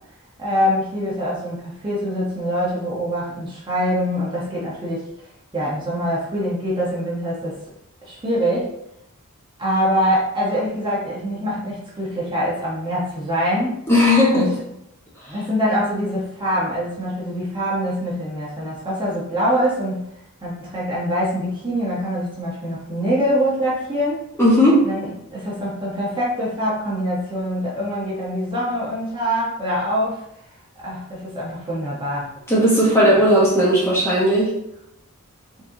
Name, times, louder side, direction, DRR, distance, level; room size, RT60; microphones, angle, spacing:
voice 1, 0.4-5.1 5.5-7.6 8.0-8.7 9.6-13.8 14.3-14.5 15.3-20.0 20.4-24.2 24.8-30.2 30.8-32.3, equal, 20° right, -6 dB, 1.3 m, -24 dB
voice 2, 13.9-14.5 24.4-24.9 32.5-34.5, equal, 10° left, -6 dB, 1.4 m, -16 dB
4.4 x 3.9 x 2.9 m, 0.78 s
head